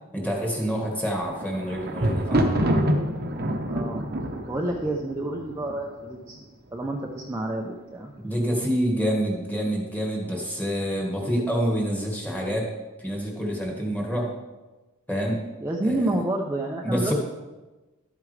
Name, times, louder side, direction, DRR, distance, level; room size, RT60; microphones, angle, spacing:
voice 1, 0.1-2.5 8.2-12.6 13.0-14.3 15.1-15.4 15.8-16.1 16.8-17.1, equal, 5° left, -1 dB, 1.8 m, -27 dB
Thunder, 1.0-6.1 6.8-7.3 7.6-7.7, equal, 45° right, 1.0 m, -26 dB
voice 2, 2.2-2.9 3.7-4.0 4.5-6.4 6.7-8.1 15.6-17.1, right 1 dB, 10° right, -1 dB, 0.7 m, -29 dB
12.5 x 8.6 x 3.3 m, 1.2 s
head